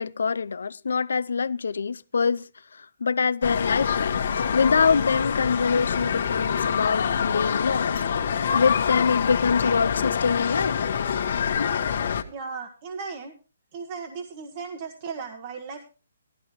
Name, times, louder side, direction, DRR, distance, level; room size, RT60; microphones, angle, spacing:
voice 1, 0.0-2.4 2.7-4.2 4.5-8.0 8.5-10.8, left 5 dB, 80° left, 0.6 m, -24 dB
sound 1, 3.4-12.2, left 7 dB, 55° left, 1.4 m, -26 dB
voice 2, 12.3-13.3 13.7-15.9, right 5 dB, 35° right, 1.4 m, -36 dB
14.5 x 12.5 x 3.1 m
hypercardioid pair, 160°, 0 cm